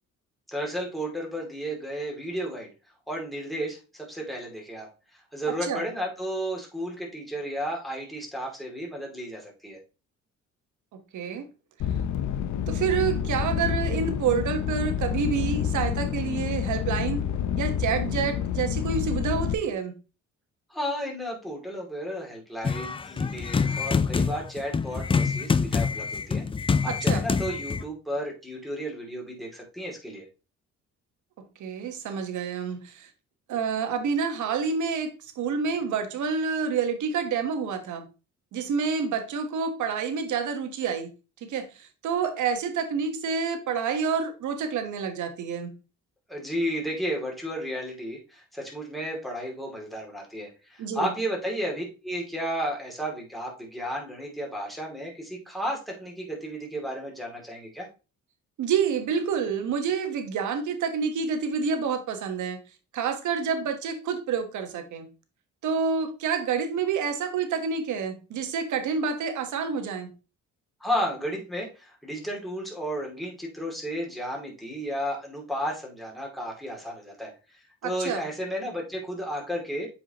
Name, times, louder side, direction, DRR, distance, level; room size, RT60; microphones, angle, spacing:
voice 1, 0.5-2.7 3.1-4.9 5.1-9.8 20.7-26.4 26.8-30.3 46.3-57.9 70.8-79.9, equal, ahead, 2.5 m, -33 dB
voice 2, 11.1-11.5 12.7-17.2 17.6-19.9 26.8-27.2 31.4-33.1 33.5-38.1 38.5-41.1 41.4-45.7 50.8-51.1 58.6-62.6 62.9-65.1 65.6-70.1 77.8-78.2, right 6 dB, 75° right, 1.3 m, -28 dB
sound 1, 11.8-19.6, left 9 dB, 70° left, 0.7 m, -28 dB
sound 2, 22.6-27.8, left 5 dB, 20° left, 0.3 m, -26 dB
7.8 x 4.9 x 2.9 m
cardioid pair, 90°, 30 cm